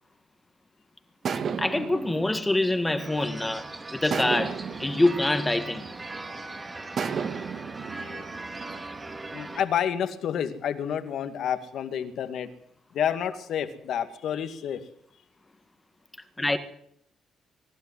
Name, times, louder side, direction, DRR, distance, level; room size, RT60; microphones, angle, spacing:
sound 1, 1.2-3.5 4.1-6.3 7.0-9.2, right 6 dB, 55° right, 1.8 m, -34 dB
voice 1, 1.6-5.9 16.4-16.6, left 2 dB, 15° left, 1.7 m, -25 dB
sound 2, 3.0-9.6, right 2 dB, 25° right, 2.3 m, -39 dB
voice 2, 9.3-12.5 12.9-14.8, left 9 dB, 70° left, 2.2 m, -29 dB
23.0 x 12.0 x 9.7 m
cardioid pair, 90°, 0 cm